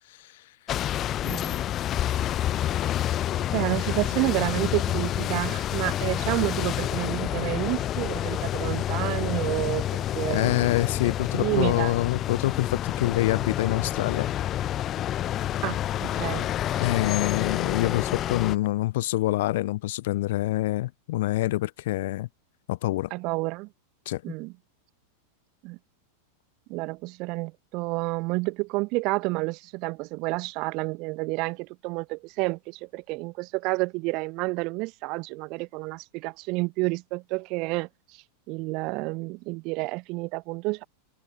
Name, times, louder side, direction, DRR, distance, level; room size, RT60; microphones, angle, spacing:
sound 1, 0.7-18.6, left 12 dB, 30° left, 1.0 m, -28 dB
voice 1, 1.2-1.6 3.4-10.7 11.3-12.0 15.6-16.5 23.1-23.7 24.2-24.5 25.6-25.8 26.7-40.8, right 25 dB, 40° right, 1.3 m, -30 dB
voice 2, 10.3-14.3 16.8-22.3 22.7-23.1 24.1-24.2, left 16 dB, 55° left, 0.6 m, -26 dB
figure-of-eight pair, 90°, 0 cm